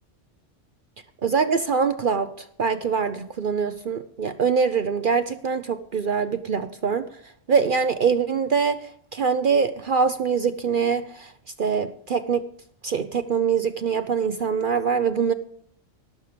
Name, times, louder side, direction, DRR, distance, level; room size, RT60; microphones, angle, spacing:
voice 1, 1.2-2.3 2.6-7.0 7.5-8.8 9.1-11.3 11.6-12.4 12.8-15.3, right 6 dB, 50° right, 11 dB, 0.7 m, -23 dB
18.0 x 7.1 x 5.1 m, 0.67 s
omnidirectional pair, 1.3 m